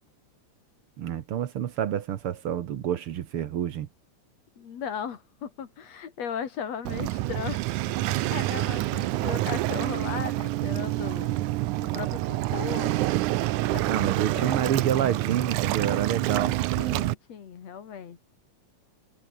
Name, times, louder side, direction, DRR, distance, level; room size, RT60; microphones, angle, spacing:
voice 1, 1.0-3.9 13.9-16.6, right 10 dB, 60° right, 1.5 m, -28 dB
voice 2, 4.6-7.6 8.0-11.4 11.8-12.9 13.7-14.7 16.8-18.2, left 7 dB, 60° left, 3.1 m, -37 dB
Waves surf, 6.9-17.1, right 17 dB, 80° right, 2.2 m, -27 dB
omnidirectional pair, 3.6 m